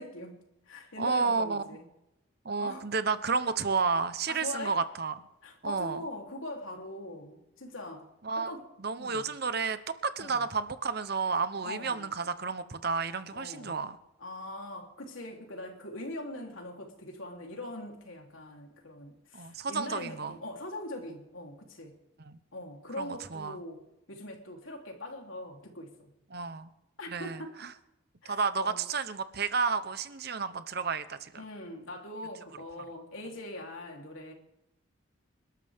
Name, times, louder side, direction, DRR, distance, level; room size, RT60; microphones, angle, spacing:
voice 1, 0.0-1.9 2.6-2.9 4.3-4.8 5.4-8.1 8.3-8.7 9.0-9.3 10.2-10.5 11.6-12.1 13.3-13.8 14.2-21.9 22.5-26.1 27.0-27.5 28.2-28.8 31.3-34.3, left 1 dB, 75° left, 1 dB, 3.4 m, -42 dB
voice 2, 1.0-1.8 2.4-5.1 5.6-6.0 8.2-8.5 8.8-14.0 19.3-20.3 22.2-22.4 23.0-23.6 26.3-26.7 27.1-27.7 28.2-31.3, right 5 dB, 50° right, 12 dB, 0.9 m, -31 dB
28.0 x 12.5 x 3.6 m, 0.92 s
head